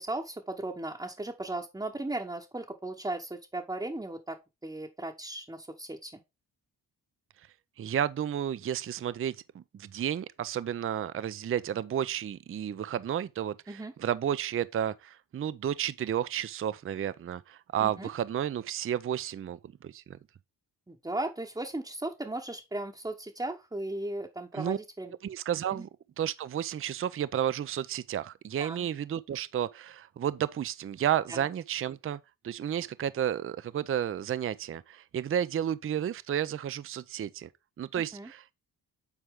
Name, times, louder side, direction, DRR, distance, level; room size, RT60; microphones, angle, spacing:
voice 1, 0.0-6.2 13.7-13.9 17.8-18.1 20.9-25.1 25.7-25.9 28.6-28.9 31.3-31.5 37.9-38.3, right 2 dB, 10° right, 1.0 m, -37 dB
voice 2, 7.8-20.2 24.5-24.8 25.2-25.9 26.2-32.2 32.4-37.5 37.8-38.5, right 10 dB, 35° right, 0.5 m, -32 dB
8.2 x 4.3 x 3.6 m
cardioid pair, 65°, 39 cm